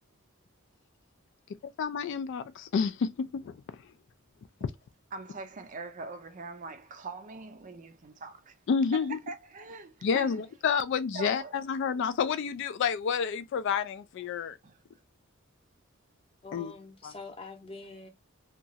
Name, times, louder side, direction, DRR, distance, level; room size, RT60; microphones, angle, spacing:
voice 1, 1.8-3.8 8.7-9.2 10.0-14.6 16.5-16.7 17.0-17.1, left 6 dB, 55° left, 0.3 m, -29 dB
voice 2, 5.1-8.6 8.9-10.4 11.1-11.5 14.6-14.8, right 3 dB, 35° right, 0.4 m, -42 dB
voice 3, 16.4-18.1, left 3 dB, 25° left, 0.7 m, -45 dB
2.9 x 2.3 x 2.6 m
head